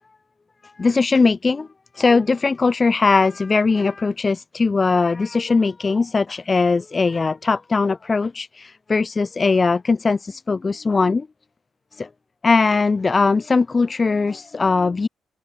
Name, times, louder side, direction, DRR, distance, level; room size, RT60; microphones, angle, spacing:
voice 1, 0.8-1.7 2.0-8.5 8.9-10.2 10.5-11.3 12.0-12.1 12.4-15.1, left 4 dB, 30° left, 0.7 m, -19 dB
cardioid pair, 90°, 0 cm